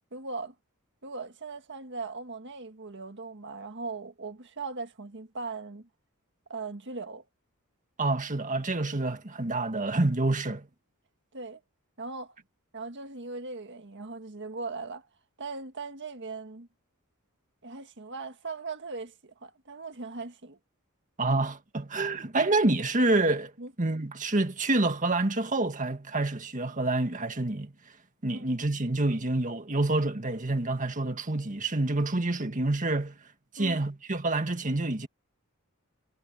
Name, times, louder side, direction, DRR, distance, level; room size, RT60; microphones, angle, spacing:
voice 1, 0.1-0.5 1.0-5.9 6.5-7.2 11.3-11.6 12.0-12.3 12.7-15.1 15.4-16.7 17.6-20.6 23.6-23.7 28.3-28.6 33.6-33.8, right 3 dB, 55° right, 1.7 m, -39 dB
voice 2, 8.0-10.7 21.2-23.5 23.8-27.7 28.2-33.1 33.5-35.1, right 2 dB, 35° right, 1.8 m, -27 dB
head